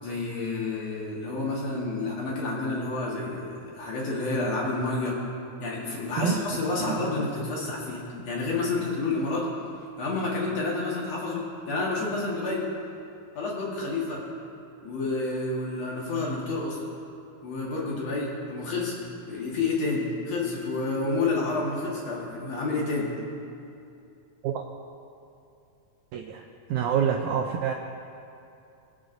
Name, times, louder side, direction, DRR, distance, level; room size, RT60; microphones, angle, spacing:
voice 1, 0.0-5.2 5.6-9.5 10.0-12.6 13.4-14.2 14.8-16.8 17.4-19.0 19.3-23.1, left 3 dB, 55° left, -4 dB, 2.4 m, -29 dB
voice 2, 26.1-26.4 26.7-27.7, right 8 dB, 90° right, 3 dB, 1.6 m, -26 dB
22.5 x 7.9 x 2.6 m, 2.6 s
omnidirectional pair, 4.0 m